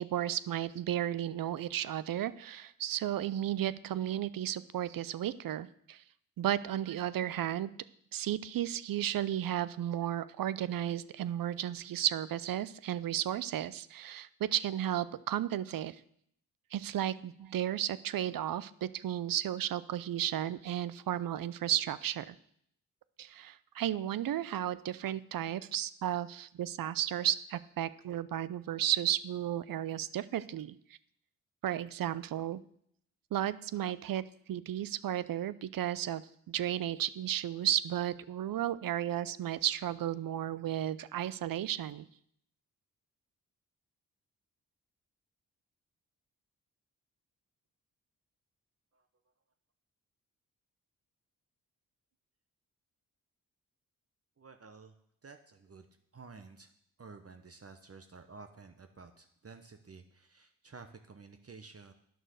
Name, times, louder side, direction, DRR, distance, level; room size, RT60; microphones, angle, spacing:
voice 1, 0.0-6.0 6.4-7.7 8.1-16.0 16.7-22.3 23.2-30.8 31.6-32.6 33.3-34.2 34.5-42.1, right 11 dB, 60° right, 17 dB, 0.6 m, -33 dB
voice 2, 54.4-54.9 55.2-55.9 56.1-56.7 57.0-61.9, right 4 dB, 40° right, 7 dB, 1.0 m, -52 dB
9.3 x 6.3 x 6.5 m, 0.68 s
supercardioid pair, 40°, 38 cm